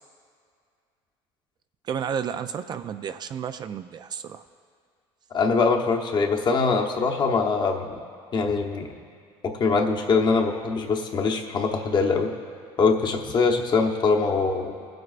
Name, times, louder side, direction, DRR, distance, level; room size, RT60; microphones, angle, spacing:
voice 1, 1.8-4.4, right 8 dB, 40° right, 10 dB, 0.3 m, -32 dB
voice 2, 5.3-8.0 8.3-8.9 9.4-12.3 12.8-14.8, left 4 dB, 45° left, 2 dB, 1.0 m, -23 dB
19.0 x 7.7 x 2.5 m, 2.2 s
supercardioid pair, 100°, 11 cm